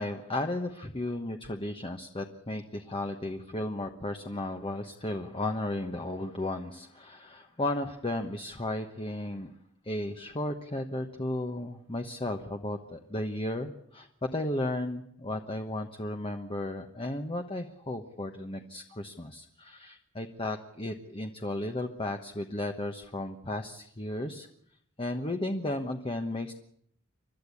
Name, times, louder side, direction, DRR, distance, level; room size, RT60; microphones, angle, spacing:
voice 1, 0.0-9.5 9.8-24.5 25.0-26.5, left 1 dB, 25° left, 5 dB, 1.2 m, -34 dB
29.5 x 13.0 x 8.5 m, 0.71 s
head